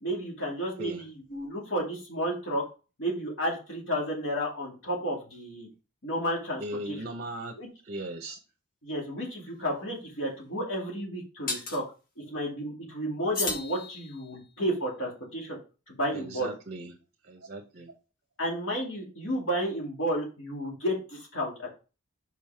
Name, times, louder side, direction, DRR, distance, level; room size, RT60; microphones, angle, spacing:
voice 1, 0.0-2.6 3.0-5.7 6.0-7.0 7.6-7.7 8.8-11.8 12.2-15.6 15.9-16.5 18.4-21.7, equal, 65° left, -2 dB, 2.5 m, -32 dB
voice 2, 6.6-7.5 7.8-8.4 16.1-17.0 17.2-17.9, right 1 dB, 50° right, 2 dB, 0.9 m, -38 dB
sound 1, 9.5-9.6 11.5-11.8 13.3-14.4, left 3 dB, 45° left, 1.4 m, -34 dB
5.5 x 4.8 x 4.3 m, 0.32 s
head